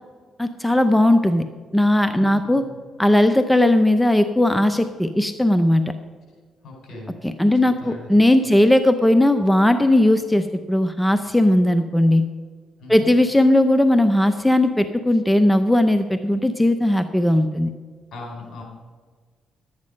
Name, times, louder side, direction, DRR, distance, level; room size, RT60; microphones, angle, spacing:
voice 1, 0.4-1.4 1.7-2.6 3.0-5.9 7.2-12.3 12.9-17.7, left 1 dB, 5° left, 8 dB, 0.7 m, -18 dB
voice 2, 2.2-2.8 6.6-7.2 7.6-8.1 12.8-13.1 18.1-18.6, left 3 dB, 65° left, 0 dB, 4.5 m, -38 dB
12.0 x 9.6 x 5.3 m, 1.5 s
cardioid pair, 90°, 0 cm